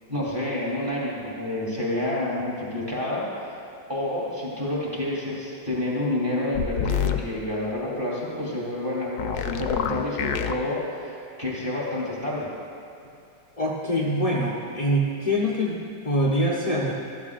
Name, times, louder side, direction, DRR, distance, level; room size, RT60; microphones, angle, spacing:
voice 1, 0.1-3.5 3.9-12.5, left 1 dB, 10° right, -7 dB, 2.9 m, -29 dB
sound 1, 6.5-7.2 9.2-10.5, left 9 dB, 70° left, 1.0 m, -26 dB
voice 2, 13.6-16.9, equal, 40° left, -5 dB, 0.5 m, -24 dB
15.0 x 13.0 x 2.5 m, 2.7 s
omnidirectional pair, 2.1 m